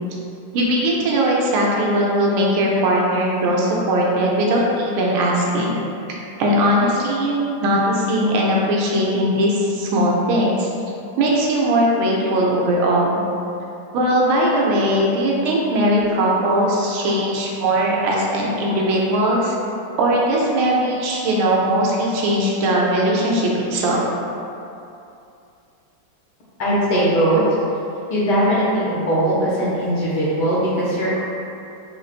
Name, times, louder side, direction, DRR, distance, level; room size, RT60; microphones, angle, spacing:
voice 1, 0.5-5.8 6.4-10.7 11.2-13.2 13.9-19.6 20.0-24.0, right 1 dB, 80° right, -3 dB, 1.5 m, -19 dB
voice 2, 26.6-27.4 28.1-31.2, right 1 dB, 65° left, -8 dB, 1.1 m, -19 dB
4.3 x 3.2 x 2.4 m, 2.7 s
omnidirectional pair, 2.3 m